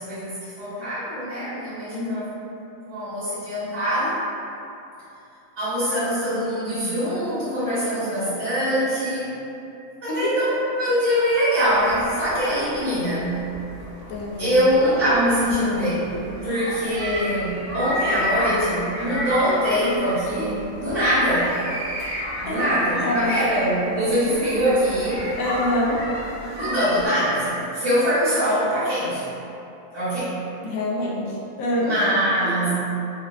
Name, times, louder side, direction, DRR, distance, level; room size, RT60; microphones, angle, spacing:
voice 1, 0.0-2.2 2.9-4.2 5.6-9.4 10.0-13.4 14.4-16.0 16.4-21.5 22.4-25.3 26.5-29.2 29.9-30.3 31.8-32.7, equal, 65° right, -14 dB, 2.0 m, -23 dB
voice 2, 1.9-2.3 10.1-10.3 14.1-14.6 16.1-16.6 22.5-22.7 23.0-23.4 25.4-26.0 30.6-32.0, left 1 dB, 85° left, -3 dB, 1.0 m, -26 dB
sound 1, 11.7-27.1, equal, 80° right, 1.5 m, -32 dB
4.8 x 2.1 x 2.3 m, 2.8 s
omnidirectional pair, 1.4 m